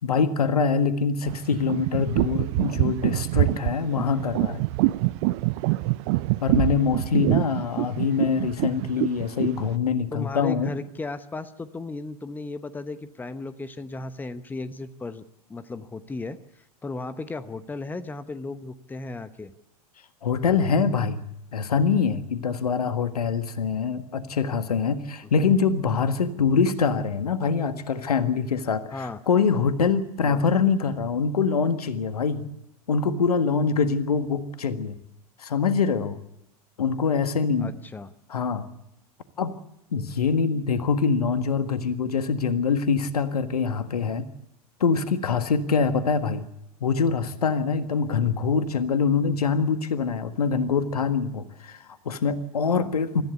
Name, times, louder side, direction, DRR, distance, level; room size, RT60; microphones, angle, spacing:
voice 1, 0.0-4.6 6.4-10.7 20.2-21.2 21.5-32.5 32.9-35.0 35.4-36.2 36.8-37.7 38.3-38.7 39.4-39.6 39.9-44.3 44.8-46.5 46.8-53.2, left 5 dB, 70° left, 11 dB, 1.7 m, -24 dB
sound 1, 1.3-9.7, right 21 dB, 45° right, 0.7 m, -25 dB
voice 2, 10.1-15.2 15.5-16.4 16.8-19.5 25.4-25.6 28.9-29.2 30.2-30.4 37.6-38.1, left 3 dB, 10° left, 13 dB, 1.0 m, -35 dB
25.5 x 14.5 x 8.2 m, 0.86 s
figure-of-eight pair, 90°, 20 cm